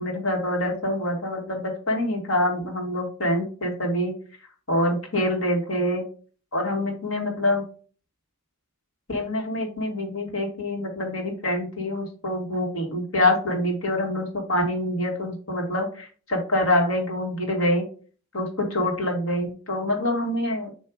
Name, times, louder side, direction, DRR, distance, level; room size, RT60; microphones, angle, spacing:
voice 1, 0.0-4.1 4.7-6.0 6.5-7.6 9.1-17.9 18.3-20.7, left 1 dB, 65° left, 1 dB, 1.9 m, -25 dB
7.4 x 2.9 x 4.7 m, 0.41 s
head